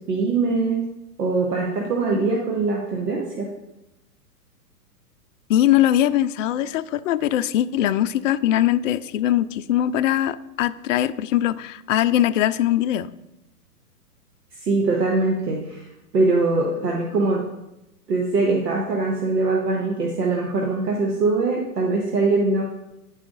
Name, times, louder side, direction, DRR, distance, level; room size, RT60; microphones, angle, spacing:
voice 1, 0.1-0.8 1.2-3.5 14.6-15.8 16.1-17.4 18.1-22.6, right 3 dB, 80° right, -1 dB, 1.5 m, -22 dB
voice 2, 5.5-13.1, left 12 dB, 55° left, 11 dB, 0.5 m, -21 dB
10.0 x 4.9 x 3.8 m, 0.92 s
hypercardioid pair, 130°, 47 cm